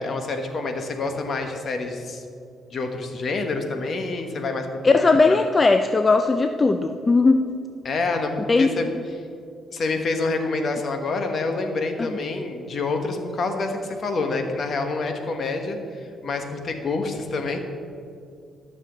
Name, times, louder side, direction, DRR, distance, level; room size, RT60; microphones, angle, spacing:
voice 1, 0.0-2.2 2.7-5.0 5.3-5.4 7.8-9.2 9.7-17.6, left 3 dB, 50° left, 5 dB, 1.2 m, -27 dB
voice 2, 4.8-7.4 8.5-8.7 12.0-12.2, left 3 dB, 30° left, 8 dB, 0.4 m, -18 dB
13.5 x 6.8 x 3.9 m, 2.5 s
cardioid pair, 90°, 0 cm